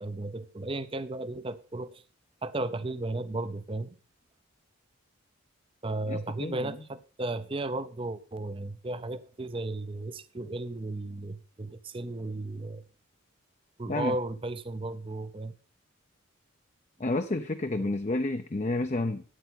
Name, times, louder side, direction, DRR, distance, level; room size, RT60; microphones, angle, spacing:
voice 1, 0.0-2.0 2.4-3.9 5.8-12.8 13.8-15.5, right 2 dB, 25° right, 0.6 m, -35 dB
voice 2, 6.1-6.8 13.9-14.2 17.0-19.2, left 2 dB, 30° left, 0.6 m, -30 dB
12.5 x 9.4 x 4.1 m
head